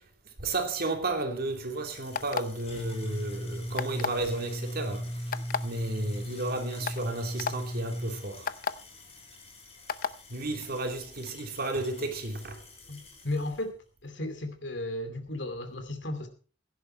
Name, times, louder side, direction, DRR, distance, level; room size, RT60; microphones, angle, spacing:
voice 1, 0.4-5.1 5.6-8.5 10.3-12.6, right 2 dB, 55° right, 2.7 m, -33 dB
sound 1, 1.5-13.6, equal, 35° left, 4.2 m, -39 dB
sound 2, 2.1-2.6 3.8-4.2 5.3-5.6 6.3-6.4 6.8-7.0 7.4-7.5 8.5-8.7 9.9-10.1, left 6 dB, 50° left, 0.7 m, -30 dB
voice 2, 12.9-13.8 14.0-16.3, left 1 dB, 70° left, 2.6 m, -34 dB
16.5 x 10.5 x 4.4 m
head